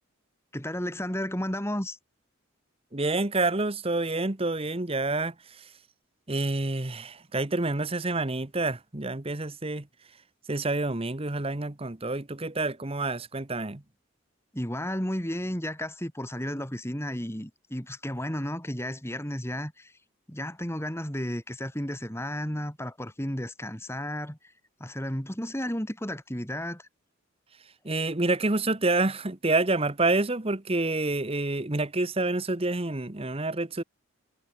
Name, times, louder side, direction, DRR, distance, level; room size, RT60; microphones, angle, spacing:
voice 1, 0.5-2.0 14.5-20.0 20.3-24.5 24.8-26.9, equal, 10° left, 4.1 m, -33 dB
voice 2, 2.9-5.7 6.3-9.9 10.5-13.8 27.8-33.8, right 2 dB, 25° right, 1.1 m, -28 dB
head